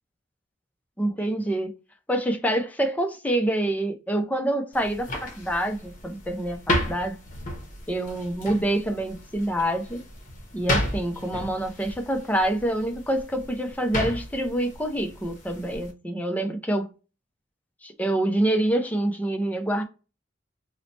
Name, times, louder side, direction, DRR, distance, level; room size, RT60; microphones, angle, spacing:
voice 1, 1.0-1.7 2.1-7.2 7.9-10.0 10.5-16.9 17.8-19.8, right 1 dB, 10° left, 0.5 m, -26 dB
sound 1, 4.7-15.9, left 1 dB, 45° left, 0.8 m, -33 dB
2.8 x 2.1 x 3.9 m
head